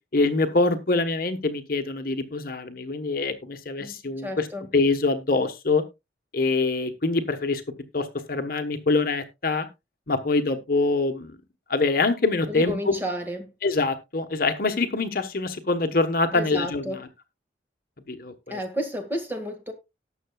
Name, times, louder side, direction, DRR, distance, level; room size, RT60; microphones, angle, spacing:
voice 1, 0.1-4.5 4.7-5.8 6.3-7.6 7.9-9.7 10.1-11.4 11.7-12.9 13.6-17.1 18.1-18.6, left 3 dB, 50° left, 1.1 m, -24 dB
voice 2, 4.2-4.7 12.5-13.5 16.3-17.0 18.5-19.7, equal, 10° right, 1.8 m, -31 dB
18.5 x 6.6 x 2.3 m
head